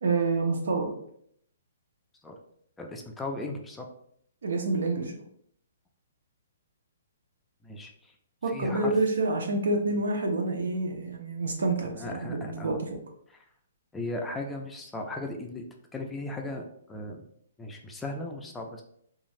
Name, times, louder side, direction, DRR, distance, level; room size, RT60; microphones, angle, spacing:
voice 1, 0.0-0.9 4.4-5.2 8.4-13.0, right 3 dB, 80° right, 3 dB, 0.6 m, -28 dB
voice 2, 2.8-3.9 7.6-8.1 8.5-8.9 12.0-12.8 13.3-13.4 13.9-15.7 15.9-17.3 17.6-18.8, left 2 dB, 10° left, 2 dB, 0.4 m, -37 dB
3.1 x 2.4 x 2.5 m, 0.68 s
hypercardioid pair, 145°, 0 cm